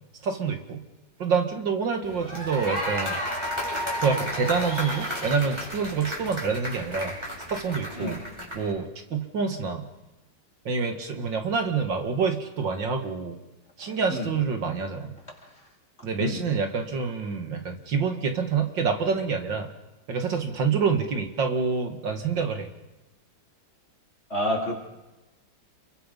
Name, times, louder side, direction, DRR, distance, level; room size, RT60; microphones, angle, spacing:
voice 1, 0.2-0.8 1.2-3.2 4.0-7.1 7.5-8.2 8.5-9.9 10.7-13.4 13.8-15.1 16.0-19.7 20.1-22.7, right 5 dB, 75° right, 5 dB, 2.7 m, -27 dB
sound 1, 2.0-8.7, equal, 15° right, 6.6 m, -32 dB
voice 2, 24.3-24.7, left 1 dB, 35° left, -1 dB, 4.7 m, -28 dB
29.0 x 22.5 x 5.5 m, 1.0 s
omnidirectional pair, 2.0 m